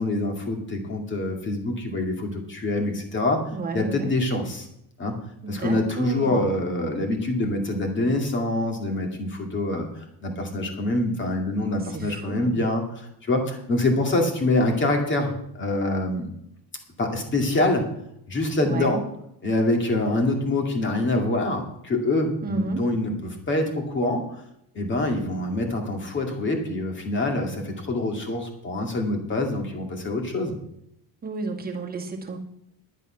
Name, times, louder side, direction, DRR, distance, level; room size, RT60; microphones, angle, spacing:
voice 1, 0.0-3.4 3.7-4.7 5.0-5.1 5.5-16.3 17.0-17.8 18.3-19.0 19.4-24.4 24.7-30.6, left 2 dB, 25° left, 3 dB, 2.3 m, -25 dB
voice 2, 3.5-4.1 5.4-6.5 11.8-12.6 18.6-18.9 22.4-22.8 31.2-32.4, right 3 dB, 20° right, 1 dB, 1.9 m, -32 dB
11.5 x 8.9 x 5.8 m, 0.75 s
cardioid pair, 160°, 44 cm